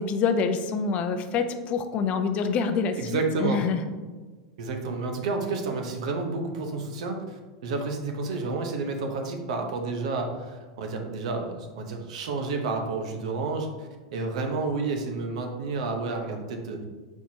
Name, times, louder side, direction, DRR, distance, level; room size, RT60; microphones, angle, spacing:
voice 1, 0.0-3.8, left 5 dB, 40° left, 8 dB, 0.4 m, -26 dB
voice 2, 3.0-3.6 4.6-16.8, right 3 dB, 75° right, 4 dB, 0.7 m, -30 dB
4.5 x 4.3 x 2.7 m, 1.3 s
supercardioid pair, 130°, 4 cm